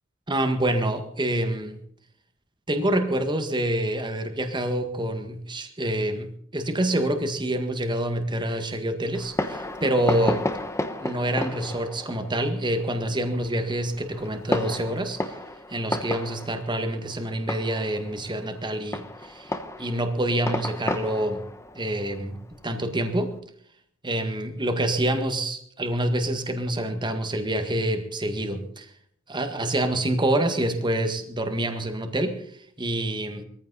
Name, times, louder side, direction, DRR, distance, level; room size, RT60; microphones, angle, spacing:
voice 1, 0.3-1.8 2.7-10.5 11.0-15.4 15.7-21.4 21.7-22.4 22.6-23.3 24.0-28.9 29.3-32.4 32.8-33.4, right 1 dB, 25° right, 7 dB, 1.7 m, -27 dB
Fireworks, 9.1-23.3, left 1 dB, 15° left, 1.1 m, -33 dB
21.0 x 15.0 x 4.1 m, 0.63 s
head